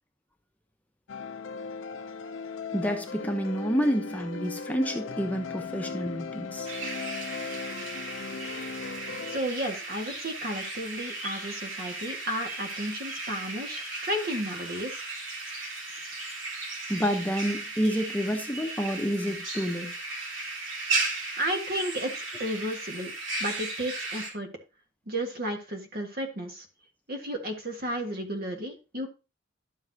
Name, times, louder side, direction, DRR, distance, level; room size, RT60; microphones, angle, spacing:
sound 1, 1.1-9.4, left 4 dB, 80° left, 0.6 m, -37 dB
voice 1, 2.7-6.7 16.9-19.9, equal, 10° left, 3 dB, 0.9 m, -29 dB
sound 2, 6.6-24.3, right 3 dB, 85° right, 3.2 m, -36 dB
voice 2, 9.3-15.0 21.4-23.1 23.4-24.5 25.1-26.6 27.1-29.1, equal, 50° right, 4 dB, 1.7 m, -33 dB
11.5 x 7.2 x 2.8 m, 0.30 s
head